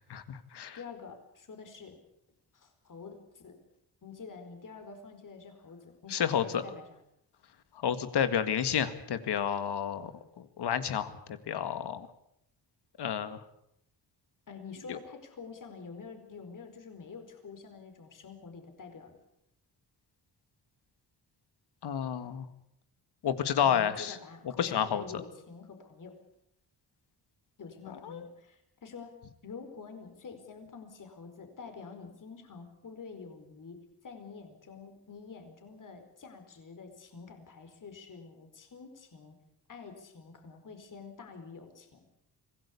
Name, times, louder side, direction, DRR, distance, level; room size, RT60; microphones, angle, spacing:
voice 1, 0.1-0.8 6.1-6.6 7.8-10.1 10.4-12.1 13.0-13.4 14.9-15.0 21.8-22.5 23.2-24.2 24.6-25.0 28.0-28.3, left 8 dB, 75° left, 11 dB, 2.1 m, -30 dB
voice 2, 0.7-2.0 2.5-3.6 4.0-7.0 14.5-19.1 23.6-26.2 27.6-29.1 29.4-39.4 39.7-42.1, left 5 dB, 50° left, 6 dB, 4.6 m, -47 dB
25.0 x 17.5 x 8.5 m, 0.76 s
cardioid pair, 120°, 40 cm